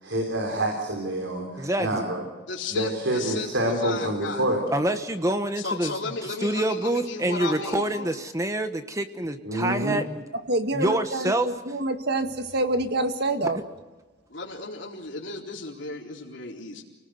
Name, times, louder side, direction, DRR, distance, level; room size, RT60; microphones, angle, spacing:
voice 1, 0.0-2.2 2.7-4.6 9.4-10.0, right 1 dB, 75° right, 2 dB, 4.1 m, -27 dB
voice 2, 1.6-2.1 4.7-10.2 10.7-11.5, right 1 dB, 15° right, 8 dB, 1.2 m, -27 dB
voice 3, 2.5-4.4 5.6-8.1 14.3-16.8, left 3 dB, 70° left, -2 dB, 4.0 m, -34 dB
voice 4, 10.5-13.6, right 2 dB, 55° right, 7 dB, 1.9 m, -26 dB
29.5 x 18.5 x 7.9 m, 1.2 s
head